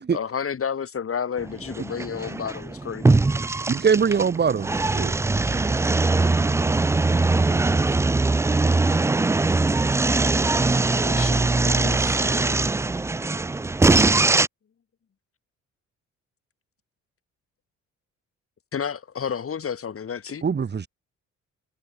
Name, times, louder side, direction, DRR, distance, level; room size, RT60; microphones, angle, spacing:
voice 1, 0.1-3.2 11.0-12.6 18.7-20.4, left 7 dB, 45° left, 5.6 m, -31 dB
sound 1, 1.4-14.5, right 3 dB, 10° right, 0.3 m, -21 dB
voice 2, 3.7-5.1 20.4-20.9, right 6 dB, 35° right, 1.6 m, -22 dB
voice 3, 5.5-7.8, right 13 dB, 80° right, 6.2 m, -46 dB
cardioid pair, 90°, 30 cm